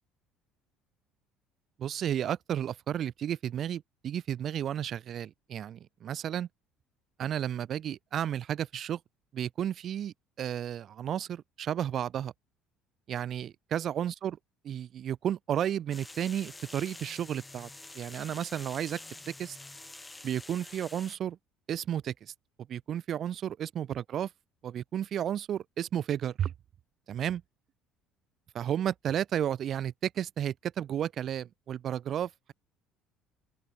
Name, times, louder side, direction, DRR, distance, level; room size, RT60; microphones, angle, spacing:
voice 1, 1.8-6.5 7.2-9.0 9.3-12.3 13.1-14.4 14.6-17.7 17.9-19.0 19.3-19.6 20.2-21.4 21.7-22.3 22.7-24.3 24.6-26.5 27.1-27.4 28.5-32.5, right 10 dB, 45° right, 1.5 m, -33 dB
sound 1, 15.9-21.2, left 2 dB, 10° left, 2.9 m, -47 dB
open air
figure-of-eight pair, 55°, 0 cm